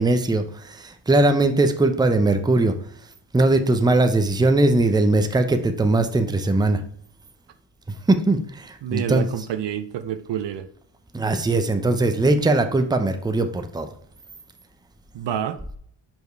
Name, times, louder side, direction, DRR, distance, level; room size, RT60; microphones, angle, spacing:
voice 1, 0.0-2.7 3.3-6.8 8.1-9.3 11.1-13.9, right 2 dB, 10° right, 0.7 m, -20 dB
voice 2, 8.8-10.7 15.1-15.6, right 9 dB, 65° right, 0.7 m, -28 dB
5.3 x 4.6 x 4.5 m
cardioid pair, 70°, 47 cm